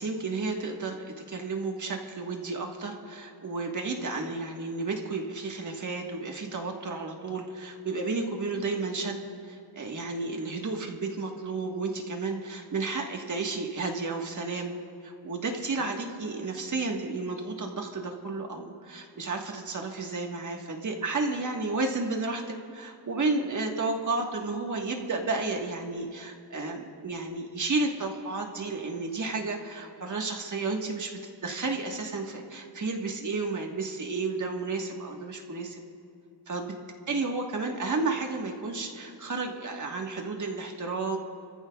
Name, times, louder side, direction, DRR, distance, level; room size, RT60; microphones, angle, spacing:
voice 1, 0.0-14.7 15.0-22.4 22.7-31.1 31.4-35.8 36.5-36.7 37.1-41.2, right 3 dB, 40° right, 2 dB, 1.5 m, -32 dB
26.0 x 14.5 x 2.3 m, 2.6 s
wide cardioid pair, 125°, 44 cm